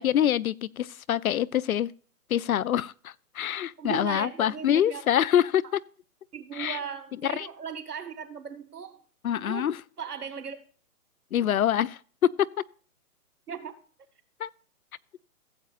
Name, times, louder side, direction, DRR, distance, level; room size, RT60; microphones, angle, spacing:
voice 1, 0.0-1.9 2.3-5.8 6.5-6.8 7.2-7.5 9.2-9.8 11.3-12.5 14.4-14.5, left 10 dB, 70° left, 0.6 m, -25 dB
voice 2, 3.8-5.0 6.3-9.0 9.4-9.7 10.0-10.6 13.5-13.8, right 7 dB, 85° right, 1.8 m, -37 dB
15.5 x 8.4 x 2.5 m
hypercardioid pair, 175°, 45 cm